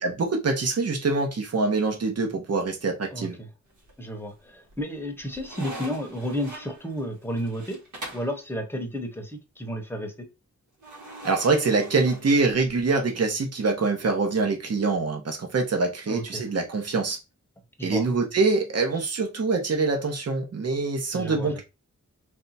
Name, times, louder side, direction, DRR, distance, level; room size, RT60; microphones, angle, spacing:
voice 1, 0.0-3.4 11.2-17.2 17.8-21.6, right 3 dB, 55° right, 1.0 m, -24 dB
voice 2, 3.1-3.5 4.0-7.8 8.1-10.3 16.1-16.4 17.8-18.0 21.1-21.6, equal, 10° left, 0.9 m, -32 dB
sound 1, 3.7-4.3 4.7-8.4 10.8-12.9, right 1 dB, 80° right, 1.5 m, -42 dB
3.4 x 2.7 x 4.1 m
wide cardioid pair, 150°, 30 cm